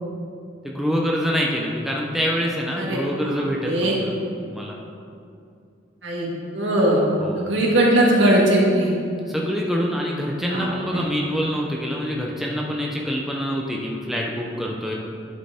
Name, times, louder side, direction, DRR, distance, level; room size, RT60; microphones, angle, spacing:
voice 1, 0.6-4.2 4.5-4.8 7.2-7.6 9.3-14.9, equal, ahead, -2 dB, 0.6 m, -25 dB
voice 2, 2.7-3.4 3.6-4.0 6.0-7.0 7.4-8.9 10.5-11.0, right 1 dB, 75° right, -3 dB, 1.6 m, -20 dB
11.0 x 4.5 x 3.6 m, 2.5 s
head